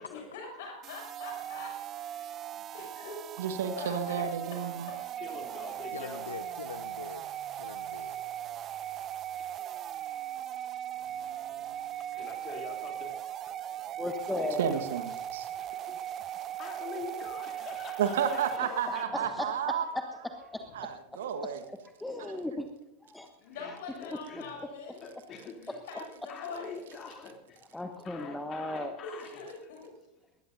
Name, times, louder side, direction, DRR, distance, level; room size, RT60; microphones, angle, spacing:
voice 1, 0.1-2.3 2.7-3.2 3.8-4.3 4.5-4.9 18.6-19.6 23.4-25.1 25.5-26.8 29.0-29.9, left 4 dB, 55° left, 1 dB, 7.0 m, -44 dB
sound 1, 0.8-19.0, right 11 dB, 30° right, 0.4 m, -39 dB
voice 2, 3.4-4.9 14.6-15.5 18.0-19.9 20.7-21.6, right 8 dB, 60° right, 7 dB, 1.5 m, -31 dB
voice 3, 5.2-6.4 9.4-9.5 12.0-13.2 14.3-15.0 15.6-15.9 16.3-19.1 23.5-24.6 25.0-25.8 26.3-29.4, left 5 dB, 30° left, 2 dB, 3.1 m, -45 dB
voice 4, 5.9-7.3 7.6-8.2, left 6 dB, 70° left, 11 dB, 0.7 m, -43 dB
voice 5, 14.0-14.7 19.1-20.0 20.4-20.9 22.0-22.7 23.0-23.3 27.7-28.9, left 2 dB, 5° left, 6 dB, 1.2 m, -36 dB
21.0 x 19.5 x 2.7 m, 0.88 s
figure-of-eight pair, 90°, 0 cm